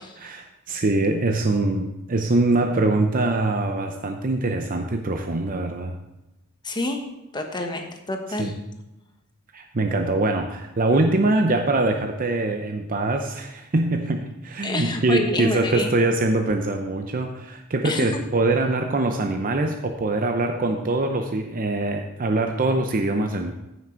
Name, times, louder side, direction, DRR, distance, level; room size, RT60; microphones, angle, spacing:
voice 1, 0.2-6.0 8.4-8.5 9.5-23.5, right 2 dB, 40° right, 5 dB, 0.7 m, -23 dB
voice 2, 6.6-7.0 7.3-8.5 14.6-15.9 17.8-18.1, left 2 dB, 20° left, 4 dB, 1.1 m, -28 dB
14.5 x 6.1 x 4.5 m, 0.95 s
head